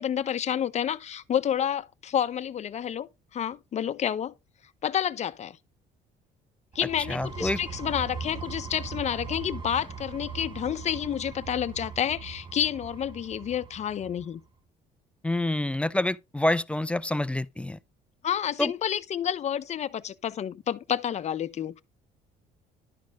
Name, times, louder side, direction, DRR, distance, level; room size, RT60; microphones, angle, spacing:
voice 1, 0.0-4.3 4.8-5.6 6.7-14.4 18.2-21.8, left 9 dB, 40° left, 0.7 m, -29 dB
sound 1, 6.7-14.4, right 5 dB, 30° right, 1.0 m, -40 dB
voice 2, 7.1-7.6 15.2-17.8 18.6-18.7, left 1 dB, 5° left, 0.4 m, -27 dB
11.5 x 4.2 x 4.7 m
cardioid pair, 110°, 17 cm